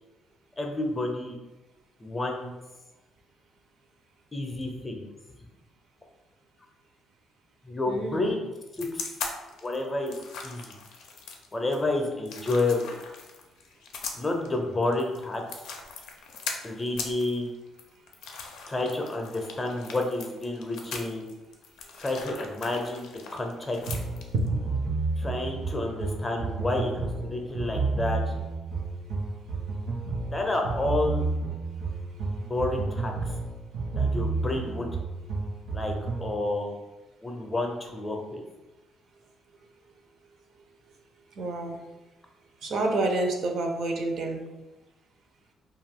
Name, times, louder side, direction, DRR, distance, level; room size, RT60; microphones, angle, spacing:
voice 1, 0.6-1.4 2.0-2.5 4.3-5.1 7.7-8.5 8.8-9.1 9.6-10.1 10.4-10.7 11.5-13.0 14.1-15.4 16.6-17.5 18.7-21.3 22.0-23.8 25.2-28.2 30.3-31.3 32.4-33.3 33.9-34.9 35.7-35.9 36.2-36.7 37.2-38.4, left 2 dB, 20° left, 2 dB, 0.5 m, -30 dB
voice 2, 7.9-8.4 24.3-24.4 41.3-41.8 42.6-44.4, right 2 dB, 65° right, 3 dB, 0.5 m, -28 dB
sound 1, 8.7-24.5, left 5 dB, 85° left, 0.4 m, -40 dB
sound 2, 23.9-36.3, right 3 dB, 85° right, 0.9 m, -31 dB
2.5 x 2.3 x 3.5 m, 1.0 s
cardioid pair, 110°, 0 cm